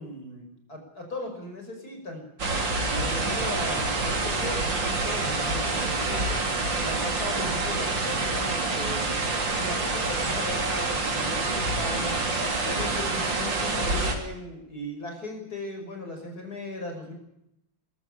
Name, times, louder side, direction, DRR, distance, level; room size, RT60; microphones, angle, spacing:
voice 1, 0.0-2.2 2.8-6.4 6.8-9.2 9.5-12.0 12.6-17.1, left 1 dB, 50° left, 3 dB, 6.3 m, -37 dB
sound 1, 2.4-14.2, right 3 dB, 70° right, 3.9 m, -27 dB
22.5 x 13.5 x 9.9 m, 0.81 s
omnidirectional pair, 2.1 m